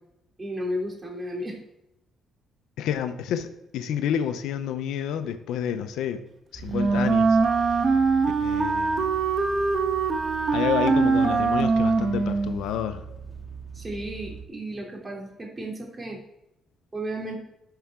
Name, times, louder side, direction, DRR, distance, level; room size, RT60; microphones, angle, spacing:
voice 1, 0.4-1.6 13.7-16.2 16.9-17.3, equal, 25° right, -1 dB, 3.1 m, -33 dB
voice 2, 2.8-6.2 6.5-7.8 8.4-9.1 10.5-13.0, left 9 dB, 90° left, 9 dB, 0.7 m, -29 dB
sound 1, 6.5-14.5, right 6 dB, 5° right, 2.1 m, -41 dB
Wind instrument woodwind instrument, 6.7-12.6, right 4 dB, 50° right, 1.2 m, -22 dB
11.5 x 5.7 x 3.7 m, 0.87 s
cardioid pair, 90°, 0 cm